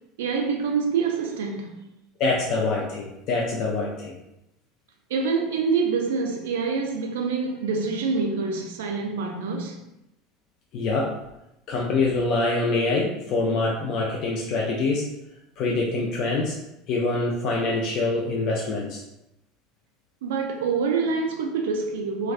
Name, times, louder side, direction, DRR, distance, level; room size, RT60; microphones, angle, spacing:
voice 1, 0.2-1.8 5.1-9.8 20.2-22.3, right 5 dB, 75° right, 0.3 m, -26 dB
voice 2, 2.2-4.2 10.7-11.2 11.7-15.1 15.6-16.6 16.9-19.0, left 3 dB, 55° left, 0.4 m, -25 dB
2.4 x 2.2 x 2.4 m
hypercardioid pair, 75°, 0 cm